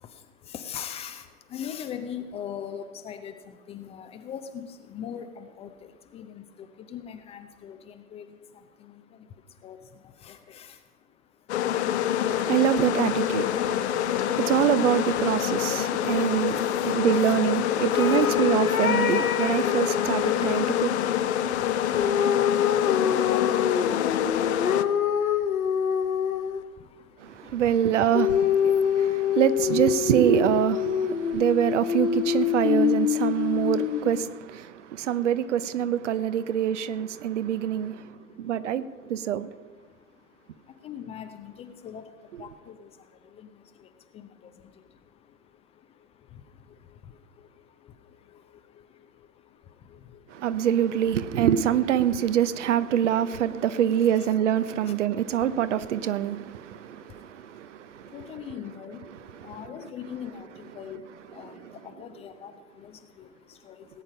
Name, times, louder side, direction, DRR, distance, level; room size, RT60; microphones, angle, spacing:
voice 1, 0.0-12.5 13.7-14.4 15.7-17.5 17.9-18.3 20.3-28.1 28.7-29.4 31.1-31.4 33.2-33.7 34.6-35.3 36.4-36.7 37.0-50.7 54.0-54.3 54.8-55.1 56.3-64.0, left 8 dB, 15° left, 0.5 m, -44 dB
sound 1, 11.5-24.8, left 11 dB, 50° left, 0.9 m, -26 dB
voice 2, 12.2-22.1 27.2-39.5 50.3-58.1, right 10 dB, 55° right, 0.8 m, -25 dB
sound 2, 17.9-20.9 21.9-26.7 28.1-34.2, left 8 dB, 80° left, 0.9 m, -26 dB
18.0 x 8.8 x 5.5 m
figure-of-eight pair, 105°, 42 cm